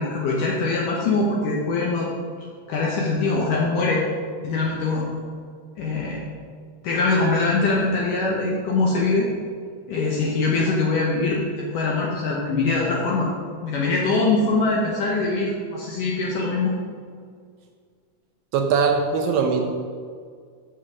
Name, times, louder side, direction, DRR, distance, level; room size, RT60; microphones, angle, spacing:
voice 1, 0.0-2.1 2.7-4.0 4.4-5.0 5.8-6.2 6.8-9.3 9.9-13.3 13.6-16.7, left 3 dB, 70° left, -3 dB, 2.3 m, -23 dB
voice 2, 18.5-19.6, right 5 dB, 75° right, 3 dB, 2.2 m, -20 dB
7.6 x 6.9 x 6.2 m, 2.1 s
omnidirectional pair, 4.5 m